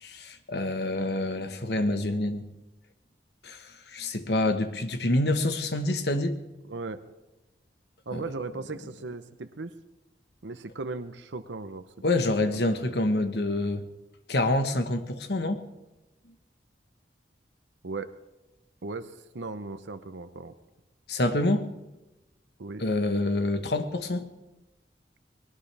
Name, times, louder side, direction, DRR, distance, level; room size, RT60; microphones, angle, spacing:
voice 1, 0.0-2.5 3.4-3.6 3.9-6.4 8.1-8.2 12.0-13.9 14.3-15.7 21.1-21.7 22.8-24.3, left 2 dB, 65° left, 8 dB, 1.3 m, -27 dB
voice 2, 6.7-7.0 8.1-9.7 10.4-11.9 12.5-13.0 17.8-18.1 18.8-20.5 22.6-22.8, right 3 dB, 90° right, 11 dB, 0.8 m, -37 dB
20.5 x 18.5 x 3.4 m, 1.0 s
head